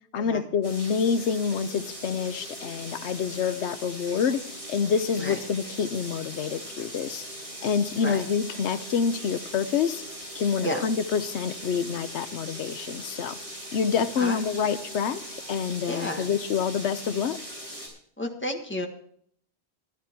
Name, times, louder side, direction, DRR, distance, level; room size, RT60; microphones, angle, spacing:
voice 1, 0.1-4.4 4.7-7.2 7.6-10.0 10.3-13.4 13.7-15.2 15.5-17.4, left 6 dB, 90° left, 13 dB, 1.0 m, -27 dB
sound 1, 0.6-17.9, equal, 70° right, 5.6 m, -40 dB
voice 2, 14.2-14.7 15.9-16.3 18.2-18.9, left 1 dB, 10° left, 3 dB, 1.6 m, -32 dB
14.0 x 11.0 x 4.5 m, 0.64 s
omnidirectional pair, 1.1 m